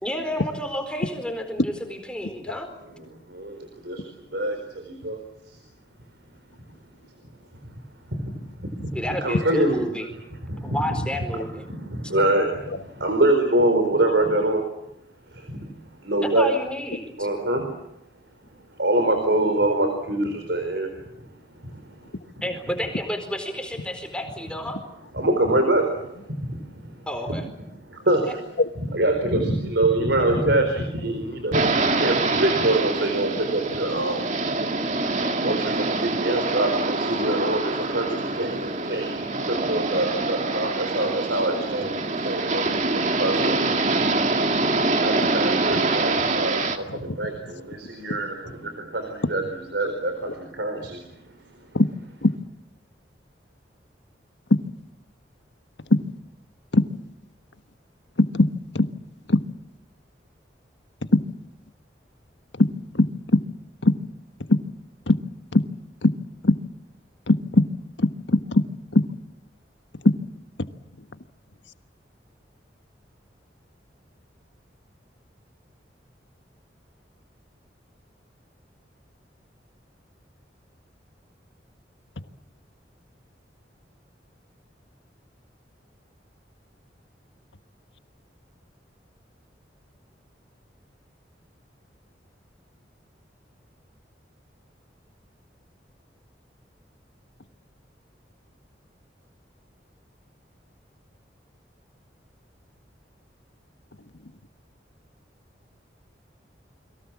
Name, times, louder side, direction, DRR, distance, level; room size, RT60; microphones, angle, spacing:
voice 1, 0.0-2.7 8.9-10.1 10.6-11.7 16.2-17.1 22.4-24.8 27.1-27.4, equal, 5° left, 5 dB, 4.3 m, -30 dB
voice 2, 3.3-5.2 5.5-5.6 8.1-8.3 8.6-8.9 9.2-9.8 10.4-11.0 11.7-14.7 15.3-16.5 17.2-17.7 18.8-20.9 21.6-21.8 25.1-26.1 26.4-26.9 27.3-27.4 27.9-28.4 28.8-34.5 35.4-43.6 45.0-51.0, right 1 dB, 75° right, 5 dB, 4.2 m, -25 dB
sound 1, 31.5-46.8, right 3 dB, 40° right, 2.1 m, -25 dB
voice 3, 58.2-58.5 58.7-58.9 59.3-59.4 61.1-61.2 62.6-62.7 62.9-63.1 63.3-63.4 63.8-63.9 64.5-64.6 65.1-65.2 65.5-65.6 66.0-66.1 66.4-66.5 67.3-67.6 68.0-68.6 68.9-69.0 70.0-70.2, left 2 dB, 80° left, 10 dB, 1.4 m, -18 dB
30.0 x 23.0 x 7.3 m, 0.82 s
head